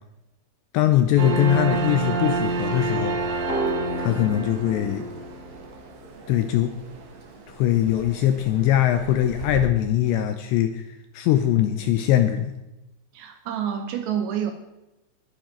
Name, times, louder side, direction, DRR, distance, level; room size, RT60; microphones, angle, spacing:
voice 1, 0.7-3.2 4.0-5.0 6.3-6.7 7.6-12.5, left 12 dB, 85° left, 8 dB, 2.6 m, -21 dB
sound 1, 1.2-9.7, right 3 dB, 55° right, 2.9 m, -29 dB
sound 2, 3.5-7.0, right 2 dB, 35° left, 3.5 m, -34 dB
voice 2, 13.1-14.5, right 9 dB, 75° right, 7 dB, 2.8 m, -28 dB
20.5 x 8.9 x 4.5 m, 0.96 s
omnidirectional pair, 5.8 m